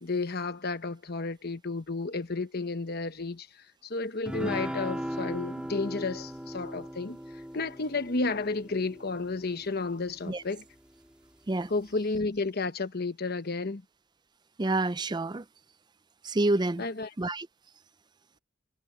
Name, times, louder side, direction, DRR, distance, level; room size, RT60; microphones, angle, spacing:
voice 1, 0.0-3.5 3.8-7.2 7.5-10.6 11.7-13.8 16.8-17.1, left 3 dB, 50° left, 1.0 m, -32 dB
sound 1, 4.3-9.9, equal, 5° right, 1.9 m, -38 dB
voice 2, 14.6-15.5 16.2-16.9 17.2-17.5, right 2 dB, 20° right, 0.5 m, -28 dB
head